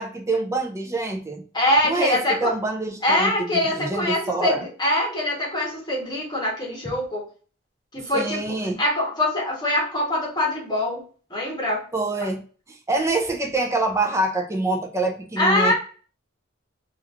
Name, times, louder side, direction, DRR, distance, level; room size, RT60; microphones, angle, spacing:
voice 1, 0.0-1.4 1.8-4.6 8.1-8.8 11.9-12.4 12.7-15.7, right 2 dB, 15° right, 3 dB, 0.5 m, -25 dB
voice 2, 1.5-2.5 3.0-7.2 7.9-11.0 11.3-11.8 15.4-15.7, left 1 dB, 25° left, -3 dB, 1.1 m, -23 dB
3.1 x 2.5 x 2.4 m, 0.40 s
head